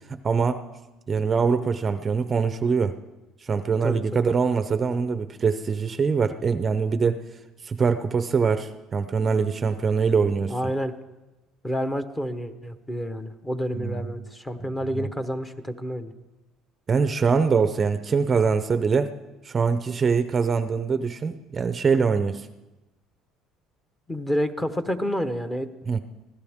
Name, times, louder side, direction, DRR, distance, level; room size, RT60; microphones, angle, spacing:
voice 1, 0.2-0.6 1.1-2.9 3.4-7.2 7.6-10.5 13.7-14.1 14.6-15.1 16.9-19.1 19.4-22.5 25.9-26.0, right 5 dB, 25° right, 10 dB, 0.6 m, -23 dB
voice 2, 3.8-4.2 10.5-10.9 11.6-16.1 24.1-25.7, equal, 10° left, 9 dB, 1.0 m, -29 dB
25.0 x 16.0 x 3.6 m, 1.1 s
cardioid pair, 135°, 0 cm